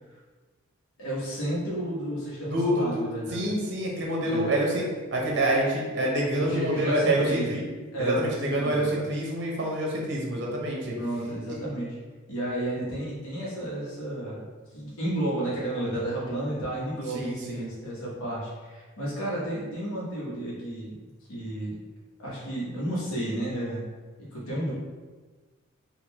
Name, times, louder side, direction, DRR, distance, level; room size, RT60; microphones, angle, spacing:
voice 1, 1.0-3.5 4.2-4.5 6.4-7.6 7.9-9.1 11.0-12.0 12.3-14.5 14.7-21.0 21.3-21.8 22.2-23.9 24.3-24.7, right 1 dB, 85° left, -7 dB, 1.0 m, -32 dB
voice 2, 2.5-3.0 3.3-7.7 8.0-10.9 17.1-17.7, right 1 dB, 55° right, -2 dB, 0.7 m, -27 dB
3.7 x 2.3 x 2.9 m, 1.3 s
head